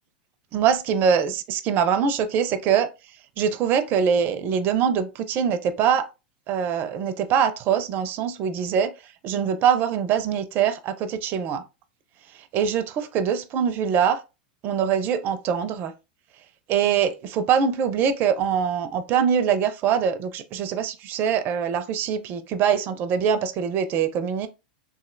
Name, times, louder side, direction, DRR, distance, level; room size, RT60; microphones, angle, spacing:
voice 1, 0.5-2.9 3.4-6.1 6.5-8.9 9.2-11.6 12.5-14.2 14.6-15.9 16.7-24.5, right 7 dB, 40° right, 0.4 m, -23 dB
3.1 x 2.6 x 2.5 m
hypercardioid pair, 100°, 5 cm